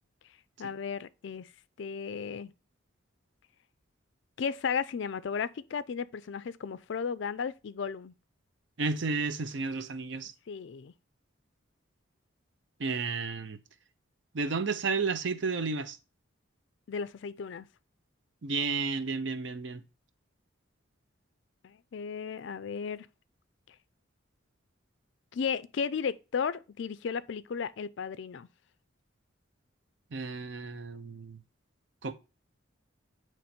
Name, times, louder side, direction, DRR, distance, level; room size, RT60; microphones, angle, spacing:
voice 1, 0.6-1.5 1.8-2.5 4.4-8.1 10.5-10.9 16.9-17.7 21.6-23.1 25.3-28.5, left 6 dB, 60° left, 0.4 m, -34 dB
voice 2, 8.8-10.3 12.8-13.6 14.3-16.0 18.4-19.8 30.1-31.4 32.0-32.1, right 4 dB, 60° right, 0.6 m, -32 dB
9.1 x 3.1 x 4.3 m
head